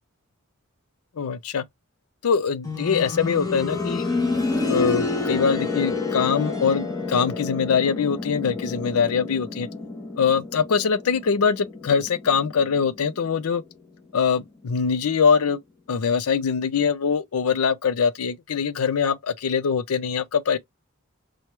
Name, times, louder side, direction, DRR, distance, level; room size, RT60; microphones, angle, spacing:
voice 1, 1.2-1.6 2.2-4.0 4.7-9.7 10.2-13.6 14.1-15.6 15.9-20.6, left 6 dB, 80° left, 0.5 m, -23 dB
sound 1, 2.6-13.4 13.7-13.8 14.7-14.8, left 3 dB, 15° left, 0.9 m, -29 dB
4.4 x 2.3 x 3.1 m
head